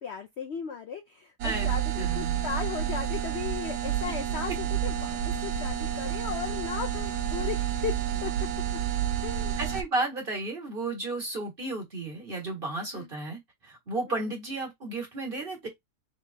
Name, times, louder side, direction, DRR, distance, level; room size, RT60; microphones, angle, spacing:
voice 1, 0.0-8.3 8.7-8.8 9.2-9.6 12.9-13.1, left 7 dB, 60° left, 0.7 m, -36 dB
voice 2, 1.4-2.5 4.1-4.2 9.6-15.7, right 2 dB, 35° right, 1.8 m, -33 dB
sound 1, 1.4-9.8, right 10 dB, 80° right, 1.2 m, -30 dB
3.7 x 3.4 x 3.3 m
omnidirectional pair, 1.7 m